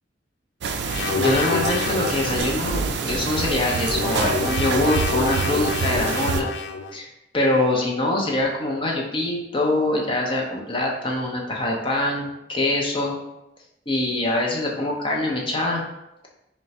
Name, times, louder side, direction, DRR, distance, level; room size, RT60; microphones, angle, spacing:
sound 1, 0.6-6.4, right 5 dB, 60° right, 0.4 m, -27 dB
sound 2, 0.9-2.5 3.3-6.9, left 4 dB, 60° left, 0.3 m, -27 dB
voice 1, 1.1-6.5 6.9-7.1 7.3-13.2 13.9-15.8, left 2 dB, 30° left, -2 dB, 0.7 m, -24 dB
3.7 x 2.2 x 4.1 m, 0.88 s
head